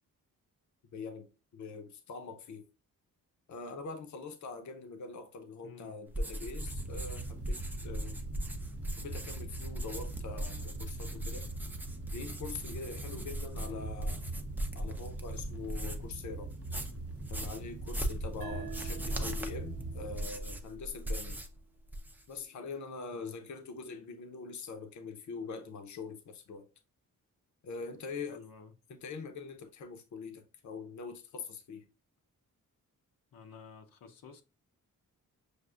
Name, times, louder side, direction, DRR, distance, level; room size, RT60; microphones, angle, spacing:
voice 1, 0.9-2.7 3.5-8.2 9.0-11.5 12.1-14.2 14.7-16.5 17.3-21.4 22.3-26.7 27.6-28.4 28.9-31.8, left 4 dB, 60° left, 0.7 m, -43 dB
voice 2, 5.6-6.0 13.7-13.9 18.5-18.7 23.1-23.3 28.3-28.7 33.3-34.4, left 5 dB, 90° left, 0.8 m, -51 dB
sound 1, 6.1-16.1 16.5-21.6 21.8-22.4, right 1 dB, 5° right, 0.4 m, -39 dB
sound 2, 6.6-20.3, right 2 dB, 45° right, 0.8 m, -42 dB
sound 3, 18.4-21.6, right 8 dB, 80° right, 0.6 m, -49 dB
6.4 x 2.5 x 2.3 m
wide cardioid pair, 175°, 34 cm